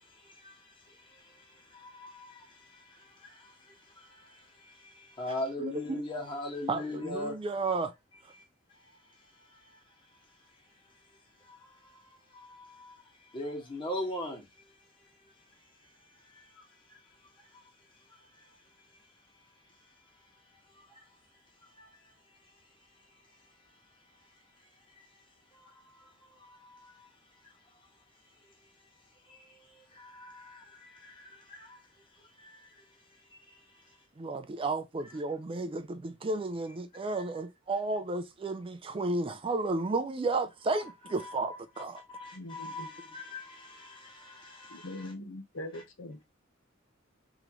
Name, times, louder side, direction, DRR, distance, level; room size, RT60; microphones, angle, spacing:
voice 1, 0.2-0.6 1.7-3.5 4.0-7.4 8.3-8.4 11.5-12.0 12.3-12.9 13.3-14.4 16.3-16.4 21.8-21.9 25.5-26.1 26.4-27.1 29.3-31.8 32.4-32.7 35.0-35.1 37.1-37.2 41.2-45.1 45.7-45.8, left 1 dB, 25° left, 1.5 m, -41 dB
voice 2, 5.6-6.0 6.7-7.9 34.2-42.0, right 3 dB, 25° right, 0.4 m, -33 dB
voice 3, 42.3-42.9 44.7-46.2, left 1 dB, 80° left, 0.9 m, -42 dB
3.7 x 3.0 x 2.9 m
head